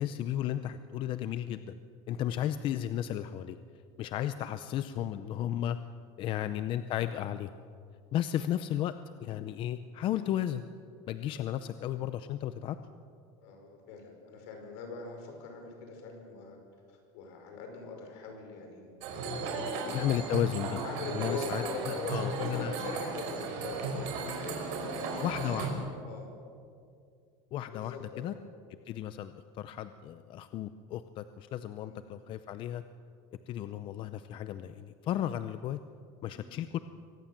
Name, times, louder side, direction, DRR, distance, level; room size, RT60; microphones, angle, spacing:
voice 1, 0.0-1.7 2.1-3.6 4.0-5.8 6.2-7.5 8.1-8.9 9.2-10.6 11.1-12.8 19.9-20.8 21.1-22.7 25.2-25.7 27.5-28.3 28.9-32.8 33.5-35.8 36.2-36.8, left 11 dB, 40° left, 11 dB, 0.6 m, -34 dB
voice 2, 11.2-11.5 13.4-16.6 16.9-20.0 20.8-24.6 24.8-25.7 26.0-26.3 27.7-28.5 31.8-32.1 36.3-36.7, left 4 dB, 70° left, 3 dB, 5.7 m, -42 dB
sound 1, 19.0-25.7, right 3 dB, 75° right, 5.2 m, -35 dB
24.0 x 18.5 x 7.5 m, 2.3 s
cardioid pair, 165°, 14 cm